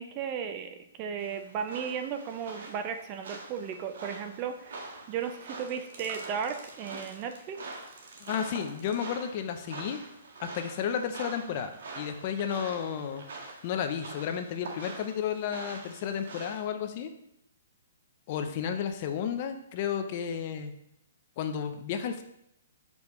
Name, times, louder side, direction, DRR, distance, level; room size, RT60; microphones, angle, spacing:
voice 1, 0.0-7.6, right 7 dB, 30° right, 7 dB, 0.5 m, -35 dB
sound 1, 1.2-16.6, right 3 dB, 70° right, 1.6 m, -45 dB
voice 2, 8.2-10.0 10.4-11.7 12.0-13.2 13.6-17.1 18.3-20.7 21.4-22.2, left 8 dB, 40° left, 7 dB, 0.6 m, -32 dB
6.6 x 5.3 x 3.1 m, 0.78 s
hypercardioid pair, 160°, 0 cm